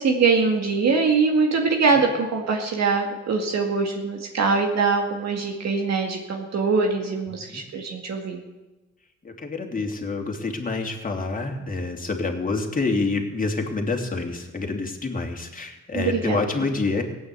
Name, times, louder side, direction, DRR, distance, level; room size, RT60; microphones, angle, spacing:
voice 1, 0.0-8.4 15.9-16.4, right 4 dB, 60° right, 2 dB, 2.2 m, -23 dB
voice 2, 9.2-17.0, left 3 dB, 25° left, 2 dB, 2.7 m, -27 dB
17.5 x 9.0 x 8.3 m, 1.1 s
cardioid pair, 100°, 30 cm